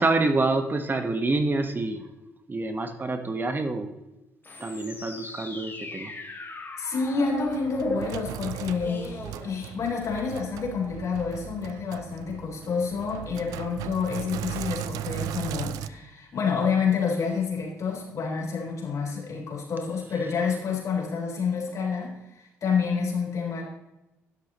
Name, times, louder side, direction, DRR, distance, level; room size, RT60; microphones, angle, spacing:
voice 1, 0.0-2.0 2.5-3.9 4.6-6.1, right 3 dB, 35° right, 7 dB, 1.3 m, -27 dB
sound 1, 4.4-10.1, left 2 dB, 35° left, 3.0 m, -39 dB
voice 2, 6.8-23.6, left 5 dB, 60° left, -1 dB, 4.0 m, -28 dB
Sink (filling or washing), 7.0-15.9, right 11 dB, 85° right, 0.4 m, -37 dB
11.5 x 11.0 x 3.1 m, 0.97 s
supercardioid pair, 60°, 6 cm